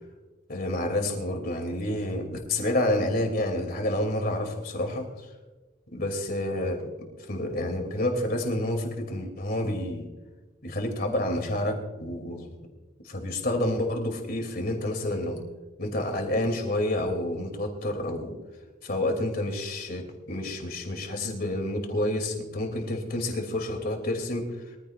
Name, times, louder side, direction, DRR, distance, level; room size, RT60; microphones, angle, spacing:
voice 1, 0.5-5.1 5.9-10.1 10.6-12.5 13.0-15.4 15.8-18.3 18.8-24.5, left 1 dB, 50° left, 4 dB, 2.8 m, -29 dB
23.5 x 14.5 x 2.5 m, 1.2 s
head